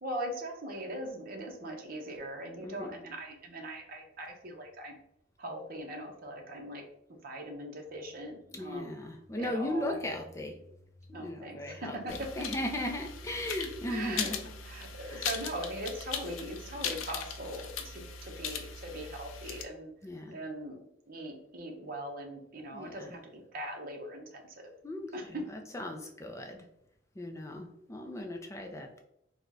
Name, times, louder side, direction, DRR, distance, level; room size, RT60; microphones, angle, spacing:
voice 1, 0.0-5.0 5.4-6.8 7.2-8.9 9.4-10.0 11.1-12.3 13.9-14.3 14.6-19.9 20.3-20.8 21.1-24.4 25.1-25.5, right 1 dB, 45° right, 2 dB, 0.7 m, -40 dB
voice 2, 2.6-2.9 8.5-10.5 11.1-14.4 15.1-15.3 20.0-20.4 22.7-23.2 24.8-25.1 25.7-26.6 27.2-29.0, left 1 dB, 15° left, 3 dB, 0.4 m, -37 dB
sound 1, 12.1-19.6, left 6 dB, 85° left, 0.4 m, -39 dB
3.7 x 2.1 x 3.4 m, 0.75 s
head